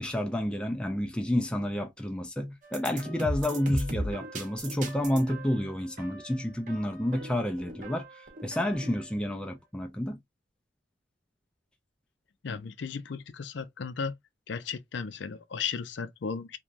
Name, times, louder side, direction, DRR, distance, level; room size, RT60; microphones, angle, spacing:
voice 1, 0.0-8.1 8.4-10.2, left 1 dB, 5° left, 0.3 m, -30 dB
sound 1, 2.6-9.1, right 1 dB, 40° right, 0.8 m, -38 dB
voice 2, 12.4-14.1 14.5-16.6, left 6 dB, 65° left, 0.4 m, -35 dB
3.0 x 2.2 x 2.5 m
head